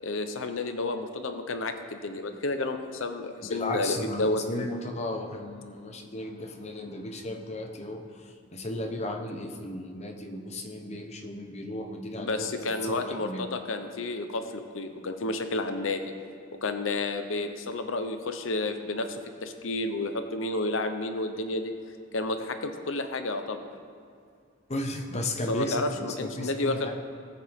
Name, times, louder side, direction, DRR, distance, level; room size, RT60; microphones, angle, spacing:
voice 1, 0.0-4.4 12.2-16.1 16.6-21.7 22.1-23.6 25.5-26.9, left 2 dB, 75° left, 7 dB, 0.8 m, -31 dB
voice 2, 3.4-12.5 12.8-13.5 24.7-26.9, left 1 dB, 35° left, 3 dB, 1.1 m, -35 dB
18.5 x 8.3 x 3.6 m, 2.3 s
head